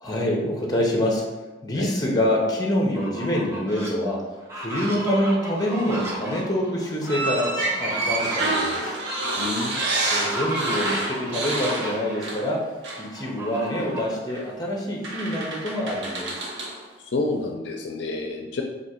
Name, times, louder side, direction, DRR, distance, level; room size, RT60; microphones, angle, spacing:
voice 1, 0.0-1.2 1.6-9.0 10.1-12.7 13.0-16.4, equal, 20° left, -1 dB, 0.7 m, -26 dB
Fowl, 2.8-3.9 4.4-12.1 13.1-14.2 14.6-14.7 15.1-16.8, equal, 15° right, 0.7 m, -34 dB
sound 1, 7.1-12.6 12.8-13.1 14.3-14.4 15.0-16.8, right 2 dB, 70° right, 0.8 m, -28 dB
voice 2, 9.4-9.9 17.1-18.6, left 2 dB, 65° left, 2 dB, 0.4 m, -28 dB
3.5 x 2.7 x 4.4 m, 1.2 s
head